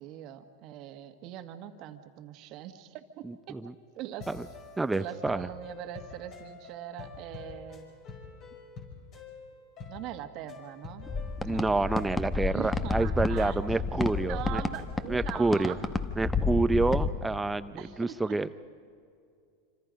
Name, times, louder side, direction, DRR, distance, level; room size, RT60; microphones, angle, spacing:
voice 1, 0.0-3.6 3.9-4.3 4.9-7.9 9.9-11.1 11.4-11.7 12.5-13.8 14.3-15.8 17.8-18.4, right 12 dB, 50° right, 7 dB, 1.7 m, -42 dB
voice 2, 3.2-3.7 4.3-4.4 4.8-5.5 11.4-14.6 15.1-15.8 16.2-17.7 18.0-18.5, right 3 dB, 10° right, 13 dB, 0.6 m, -28 dB
sound 1, 4.2-14.9, left 4 dB, 45° left, 5.8 m, -47 dB
sound 2, 11.0-17.1, left 4 dB, 15° left, 1.2 m, -31 dB
27.0 x 26.0 x 5.2 m, 2.4 s
hypercardioid pair, 110°, 0 cm